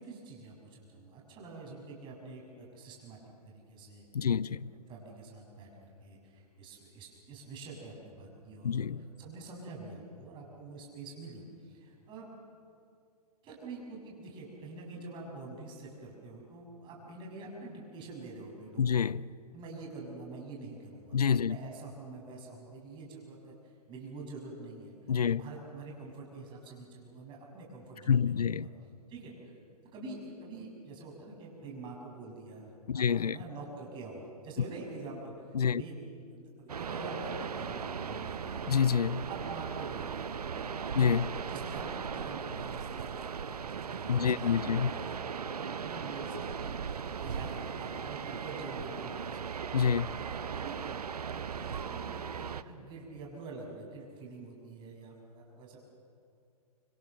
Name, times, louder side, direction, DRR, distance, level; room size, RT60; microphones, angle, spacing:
voice 1, 0.0-4.5 4.9-8.9 9.2-12.3 13.4-19.1 19.5-24.9 25.3-28.7 29.1-29.5 29.9-38.7 39.3-40.3 40.5-41.0 41.5-43.2 43.4-45.2 45.5-46.4 47.2-49.6 50.2-51.0 51.3-55.8, right 3 dB, 25° right, 6.5 m, -46 dB
voice 2, 4.1-4.7 8.6-9.1 18.8-19.2 21.1-21.6 25.1-25.4 28.1-28.7 32.9-33.4 35.5-35.8 38.7-39.3 41.0-41.4 44.1-44.9 49.7-50.2, left 7 dB, 75° left, 0.6 m, -27 dB
sound 1, 36.7-52.6, right 6 dB, 70° right, 0.9 m, -38 dB
26.0 x 24.0 x 6.6 m
figure-of-eight pair, 120°, 20 cm